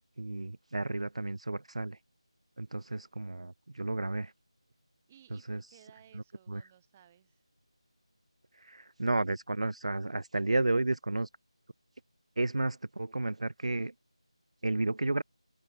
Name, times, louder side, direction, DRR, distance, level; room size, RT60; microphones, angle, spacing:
voice 1, 0.2-2.0 2.6-4.3 5.5-5.6 6.1-6.6 8.5-11.3 12.4-13.9 14.6-15.2, right 2 dB, 75° right, 0.4 m, -32 dB
voice 2, 5.1-7.4, right 10 dB, 15° right, 4.2 m, -60 dB
figure-of-eight pair, 170°, 3 cm